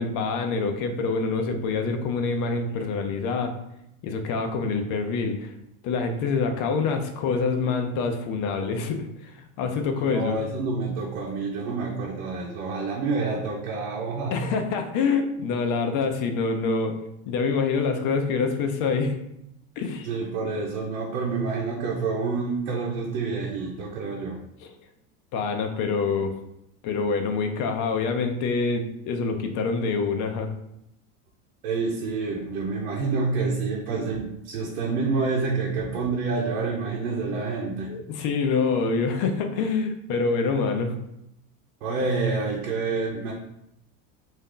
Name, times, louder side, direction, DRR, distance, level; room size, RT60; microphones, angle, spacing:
voice 1, 0.0-3.5 4.0-5.5 5.8-10.3 14.3-17.0 17.3-19.1 19.8-20.1 24.6-24.7 25.3-26.3 26.8-30.5 37.9-41.0, left 4 dB, 50° left, 6 dB, 0.6 m, -26 dB
voice 2, 9.9-14.4 20.0-24.4 31.6-37.9 41.8-43.3, right 4 dB, 80° right, -2 dB, 0.9 m, -28 dB
3.4 x 2.7 x 3.7 m, 0.82 s
supercardioid pair, 125°, 43 cm